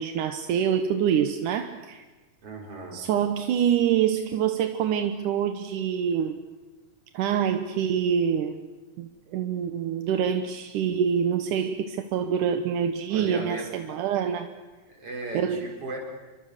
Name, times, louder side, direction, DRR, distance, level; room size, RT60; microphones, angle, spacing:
voice 1, 0.0-2.0 2.9-6.4 7.1-8.6 9.0-14.5 15.3-15.7, right 8 dB, 80° right, 7 dB, 2.6 m, -26 dB
voice 2, 2.4-3.0 13.1-14.0 14.9-16.0, right 2 dB, 45° right, 1 dB, 5.8 m, -36 dB
29.0 x 24.0 x 6.6 m, 1.2 s
omnidirectional pair, 3.6 m